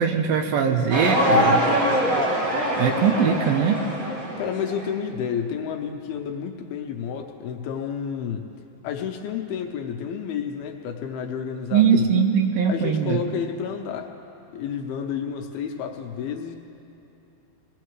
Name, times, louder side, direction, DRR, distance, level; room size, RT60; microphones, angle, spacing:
voice 1, 0.0-1.7 2.8-3.8 11.7-13.2, right 7 dB, 75° right, 4 dB, 2.5 m, -21 dB
sound 1, 0.9-4.9, equal, 40° right, 2.1 m, -23 dB
voice 2, 4.4-8.5 8.8-12.0 12.7-14.1 14.5-16.6, left 7 dB, 80° left, 3 dB, 2.6 m, -30 dB
23.0 x 18.5 x 3.2 m, 2.9 s
omnidirectional pair, 4.6 m